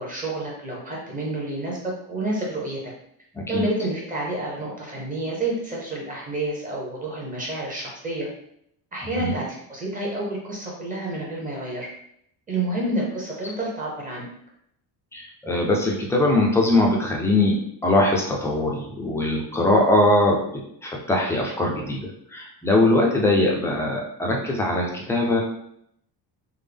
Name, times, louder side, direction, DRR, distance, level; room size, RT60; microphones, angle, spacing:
voice 1, 0.0-2.9 3.5-8.3 8.9-11.9 12.5-14.3, right 2 dB, 20° right, -3 dB, 0.7 m, -29 dB
voice 2, 3.3-3.6 9.2-9.3 15.1-17.5 17.8-25.4, left 1 dB, 5° left, -1 dB, 0.3 m, -21 dB
3.5 x 2.1 x 3.4 m, 0.72 s
cardioid pair, 165°, 41 cm